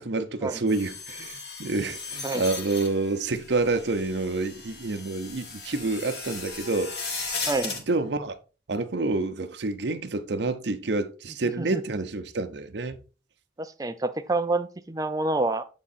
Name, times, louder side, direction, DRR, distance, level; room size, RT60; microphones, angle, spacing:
voice 1, 0.0-7.3 7.7-8.4 8.7-13.0, right 3 dB, 70° right, 0.7 m, -28 dB
sound 1, 0.7-7.8, left 4 dB, 65° left, 1.5 m, -37 dB
voice 2, 13.6-15.6, right 2 dB, 20° right, 0.5 m, -27 dB
8.2 x 3.7 x 4.2 m
head